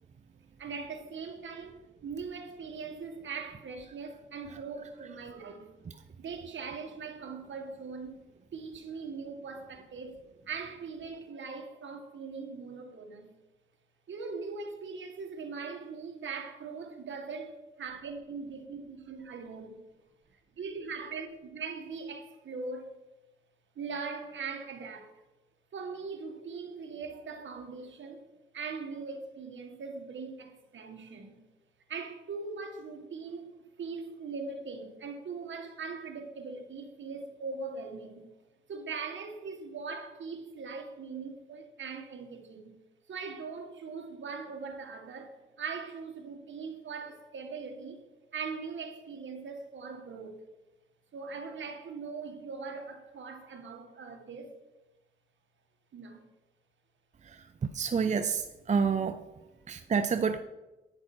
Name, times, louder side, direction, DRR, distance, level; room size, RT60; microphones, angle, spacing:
voice 1, 0.6-5.7 6.2-8.2 8.5-13.3 14.1-19.8 20.3-22.9 23.8-25.1 25.7-28.3 28.5-31.4 31.9-38.3 38.7-42.8 43.1-48.0 48.3-50.3 51.1-54.5 55.9-56.3, right 5 dB, 65° right, 1.9 m, -41 dB
voice 2, 57.7-59.2 59.7-60.4, right 6 dB, 35° right, 0.5 m, -28 dB
10.5 x 9.4 x 4.5 m
cardioid pair, 100°, 21 cm